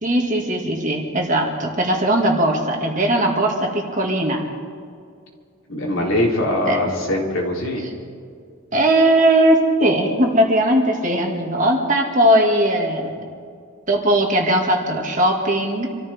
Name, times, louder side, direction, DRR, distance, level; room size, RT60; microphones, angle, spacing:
voice 1, 0.0-4.4 6.6-6.9 8.7-13.3 13.9-15.9, right 1 dB, 35° right, 0 dB, 2.2 m, -19 dB
voice 2, 5.7-7.8, left 1 dB, 70° left, -2 dB, 3.6 m, -22 dB
27.0 x 14.5 x 3.6 m, 2.3 s
head